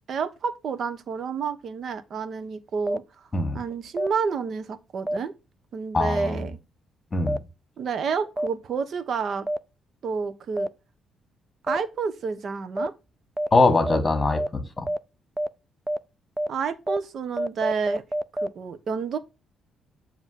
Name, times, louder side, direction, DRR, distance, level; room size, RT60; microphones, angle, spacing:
voice 1, 0.1-3.3 3.5-5.3 5.7-6.6 7.8-9.5 10.0-10.7 11.6-12.9 16.5-18.0 18.4-19.2, right 5 dB, 60° right, 1.0 m, -30 dB
sound 1, 2.9-3.0 4.0-4.1 5.1-5.2 6.2-6.3 7.3-7.4 8.4-8.5 9.5-9.6 10.6-10.7 11.7-11.8 12.8-12.9 13.4-13.5 13.9-14.0 14.4-14.5 14.9-15.0 15.4-15.5 15.9-16.0 16.4-16.5 16.9-17.0 17.4-18.5, right 1 dB, 10° right, 0.4 m, -26 dB
voice 2, 5.9-6.4 7.1-7.4 13.5-14.9, left 3 dB, 25° left, 1.7 m, -22 dB
7.2 x 3.0 x 5.7 m
cardioid pair, 90°, 0 cm